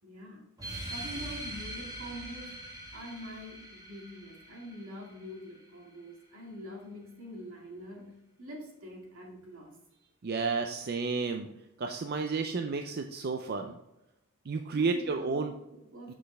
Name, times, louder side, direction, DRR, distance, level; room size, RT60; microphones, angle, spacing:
voice 1, 0.0-0.5 0.9-2.6 2.9-8.1 8.4-9.8 14.7-16.1, equal, 75° right, -1 dB, 2.2 m, -45 dB
sound 1, 0.6-5.6, right 1 dB, 15° right, 1.6 m, -42 dB
voice 2, 10.2-11.5 11.8-13.7 14.5-15.5 16.1-16.2, right 4 dB, 45° right, 6 dB, 0.5 m, -31 dB
7.7 x 6.2 x 3.4 m, 0.90 s
head